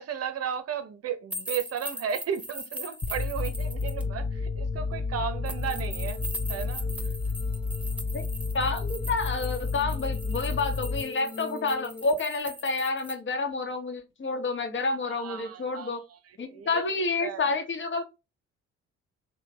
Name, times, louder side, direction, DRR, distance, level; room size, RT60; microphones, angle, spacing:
voice 1, 0.0-6.2 6.5-6.9 15.1-16.0 16.5-16.8 17.2-17.5, right 8 dB, 40° right, 0.8 m, -34 dB
sound 1, 1.3-4.0 5.5-13.1, equal, 5° right, 0.7 m, -40 dB
sound 2, 3.0-12.0, left 4 dB, 10° left, 0.3 m, -31 dB
voice 2, 8.5-16.0 16.4-18.0, left 3 dB, 30° left, 1.1 m, -29 dB
3.1 x 2.3 x 4.1 m
hypercardioid pair, 50°, 36 cm